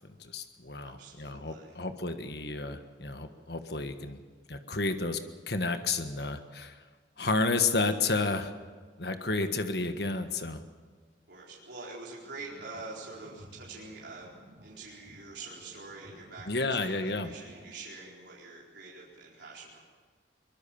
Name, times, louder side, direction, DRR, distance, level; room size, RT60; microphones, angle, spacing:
voice 1, 0.2-4.2 4.5-5.2 5.5-6.8 7.2-8.5 9.0-10.6 16.5-17.3, left 3 dB, 60° left, 8 dB, 1.5 m, -31 dB
voice 2, 0.8-1.8 11.3-14.3 14.6-19.8, right 3 dB, 75° right, -5 dB, 4.3 m, -45 dB
sound 1, 12.4-17.7, right 1 dB, 45° right, 6.9 m, -55 dB
23.0 x 21.5 x 7.1 m, 1.5 s
head